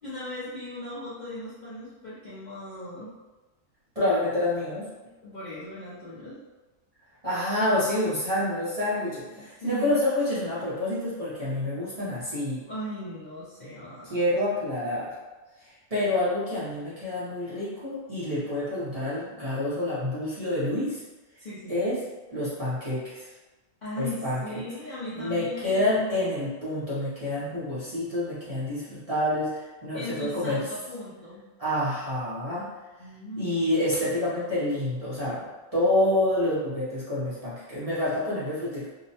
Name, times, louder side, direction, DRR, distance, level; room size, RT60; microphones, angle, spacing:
voice 1, 0.0-3.1 5.0-6.4 9.3-9.9 12.7-14.2 21.4-21.8 23.8-26.1 29.9-31.5 33.0-33.7, equal, 50° left, -10 dB, 0.5 m, -38 dB
voice 2, 3.9-4.8 7.2-12.6 14.1-15.1 15.6-21.0 21.7-22.0 22.3-23.2 24.0-24.6 25.1-30.6 31.6-32.7 33.4-38.9, left 1 dB, 35° right, -10 dB, 0.6 m, -28 dB
2.7 x 2.1 x 2.7 m, 1.2 s
omnidirectional pair, 1.4 m